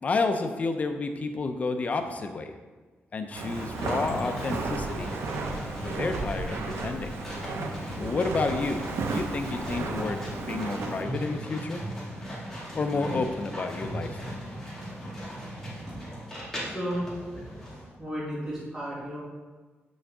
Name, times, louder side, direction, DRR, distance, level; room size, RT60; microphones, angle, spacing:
voice 1, 0.0-2.5 3.1-5.1 5.8-7.2 8.0-8.8 9.1-11.8 12.7-14.2, left 3 dB, 35° left, 7 dB, 0.5 m, -30 dB
sound 1, 3.3-17.9, equal, 5° left, 2.1 m, -38 dB
Walk footsteps, 3.3-11.0, right 3 dB, 80° right, 0.7 m, -34 dB
voice 2, 16.6-17.4 18.0-19.2, equal, 15° right, -8 dB, 2.2 m, -34 dB
7.6 x 6.3 x 3.5 m, 1.3 s
wide cardioid pair, 180°, 4 cm